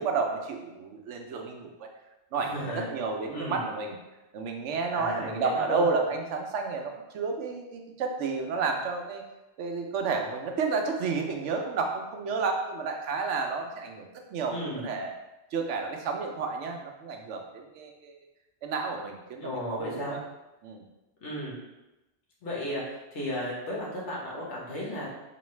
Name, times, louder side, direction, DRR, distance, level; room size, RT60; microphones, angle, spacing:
voice 1, 0.0-1.9 2.3-4.0 4.3-9.2 9.6-15.1 15.5-18.2 18.6-20.2 20.6-20.8, right 4 dB, 90° right, 3 dB, 1.0 m, -31 dB
voice 2, 2.4-2.9 3.3-3.7 4.9-5.8 14.5-14.9 19.4-20.2 21.2-21.6 22.4-25.1, equal, 80° left, -5 dB, 1.5 m, -34 dB
4.0 x 3.0 x 3.1 m, 1.0 s
omnidirectional pair, 1.2 m